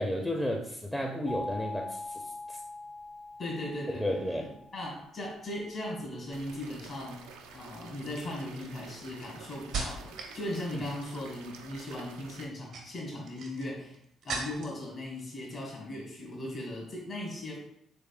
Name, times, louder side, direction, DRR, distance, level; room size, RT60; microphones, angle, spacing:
voice 1, 0.0-2.6 3.9-4.5 10.7-10.8, equal, 10° left, 1 dB, 0.5 m, -33 dB
sound 1, 1.3-6.0, left 2 dB, 85° left, 1.1 m, -43 dB
voice 2, 3.4-14.0 14.2-17.6, left 1 dB, 55° left, -3 dB, 1.3 m, -38 dB
sound 2, 6.3-12.5, right 5 dB, 85° right, 0.3 m, -50 dB
sound 3, 7.2-7.3 8.0-10.4 10.7-11.2 12.4-14.8 15.2-15.8 16.1-16.3, right 4 dB, 70° right, 0.7 m, -40 dB
3.5 x 3.2 x 2.4 m, 0.73 s
supercardioid pair, 55°, 0 cm